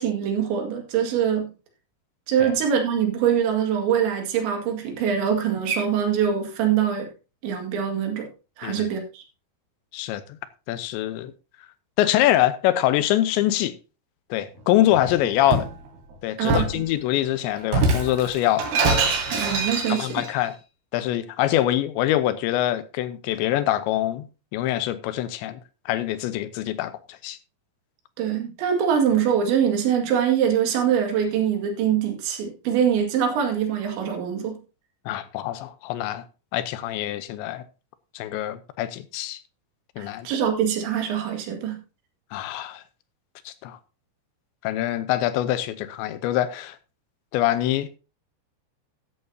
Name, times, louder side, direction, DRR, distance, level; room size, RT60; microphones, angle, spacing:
voice 1, 0.0-1.5 2.3-7.1 7.4-8.3 8.6-9.2 16.4-16.8 19.3-20.3 28.2-34.6 40.0-41.8, right 8 dB, 90° right, 4.3 m, -23 dB
voice 2, 9.9-10.4 10.7-11.3 12.0-13.8 14.3-15.7 16.2-18.7 19.9-20.6 20.9-24.3 24.5-25.6 25.9-27.4 35.1-36.2 36.5-37.6 38.1-39.4 40.0-40.3 42.3-42.8 43.5-43.8 44.6-46.8 47.3-48.0, left 13 dB, 85° left, 3.1 m, -24 dB
Shatter, 14.9-15.8 16.5-16.8 17.7-20.3, right 3 dB, 65° right, 4.1 m, -24 dB
13.5 x 10.0 x 2.8 m
omnidirectional pair, 5.1 m